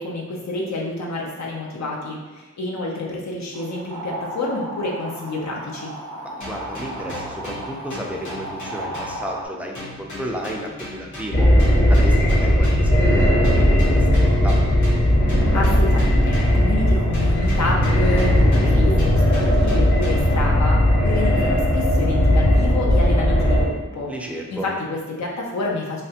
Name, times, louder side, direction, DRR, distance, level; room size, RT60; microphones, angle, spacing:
voice 1, 0.0-5.9 15.5-24.1 24.5-26.0, left 2 dB, 70° left, -3 dB, 0.6 m, -28 dB
sound 1, 3.5-9.5, right 1 dB, 75° right, 0.6 m, -34 dB
sound 2, 6.4-9.5 9.7-13.0 13.4-16.8 17.1-20.4, left 1 dB, 85° left, 1.3 m, -38 dB
voice 2, 6.4-11.5 11.9-14.6 18.3-18.8 24.1-24.7, equal, 5° right, -1 dB, 0.4 m, -32 dB
sound 3, 11.3-23.6, left 1 dB, 40° left, 0.8 m, -17 dB
3.3 x 2.4 x 2.8 m, 1.3 s
wide cardioid pair, 105°, 29 cm